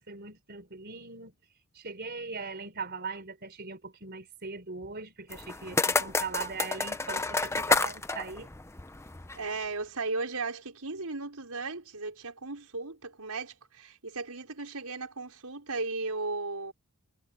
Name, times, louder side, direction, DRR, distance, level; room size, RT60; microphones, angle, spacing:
voice 1, 0.0-1.4 1.7-8.5, right 4 dB, 45° right, 4.1 m, -40 dB
sound 1, 5.3-9.5, left 3 dB, 10° left, 0.7 m, -30 dB
voice 2, 9.4-16.7, right 3 dB, 85° right, 5.2 m, -36 dB
head